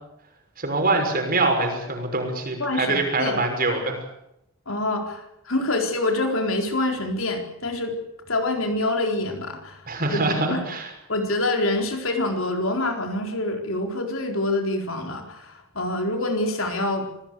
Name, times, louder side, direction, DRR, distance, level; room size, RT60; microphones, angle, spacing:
voice 1, 0.6-4.0 9.9-10.9, right 2 dB, 45° right, 3 dB, 6.2 m, -24 dB
voice 2, 2.6-3.4 4.7-8.0 8.3-10.2 10.5-10.6 11.1-17.1, left 2 dB, 75° left, 4 dB, 4.2 m, -26 dB
25.5 x 17.5 x 8.4 m, 0.81 s
head